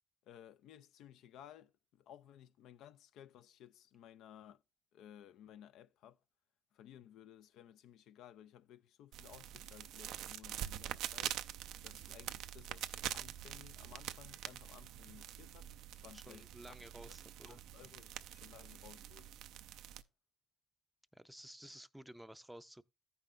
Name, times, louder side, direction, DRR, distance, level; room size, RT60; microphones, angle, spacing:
voice 1, 0.2-4.6 4.9-6.2 6.7-11.4 11.8-16.8 17.0-17.1 17.5-19.3, left 10 dB, 80° left, 0.3 m, -58 dB
sound 1, 9.1-20.0, right 12 dB, 80° right, 0.3 m, -45 dB
voice 2, 16.1-17.6 21.1-22.8, right 1 dB, 5° right, 0.4 m, -54 dB
14.5 x 5.5 x 2.4 m
supercardioid pair, 65°, 0 cm